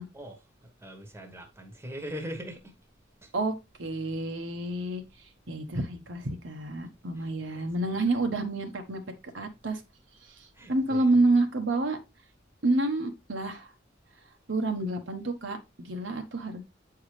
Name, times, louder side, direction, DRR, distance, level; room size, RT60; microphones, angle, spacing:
voice 1, 0.1-2.7 3.2-3.3 7.1-7.3 7.8-8.0 10.5-11.2, equal, 15° right, 1.2 m, -41 dB
voice 2, 3.8-5.0 5.5-9.0 9.3-9.8 10.7-12.0 12.6-13.7 14.5-16.6, right 2 dB, 75° right, 1.1 m, -28 dB
8.6 x 4.7 x 3.2 m
head